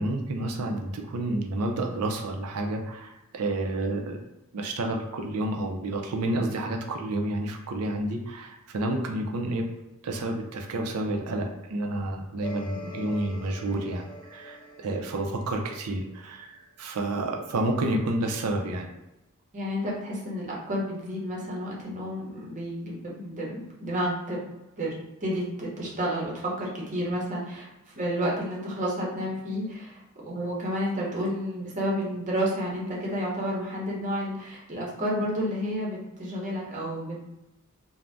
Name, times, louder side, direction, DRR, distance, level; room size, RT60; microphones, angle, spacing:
voice 1, 0.0-4.2 4.5-9.7 10.0-18.9, right 1 dB, 85° right, 3 dB, 0.5 m, -30 dB
sound 1, 12.4-16.3, equal, 20° left, 0.3 m, -44 dB
voice 2, 19.5-24.5 24.8-24.9 25.2-27.7 28.0-37.3, equal, 35° right, -4 dB, 0.7 m, -31 dB
2.5 x 2.1 x 3.3 m, 0.95 s
head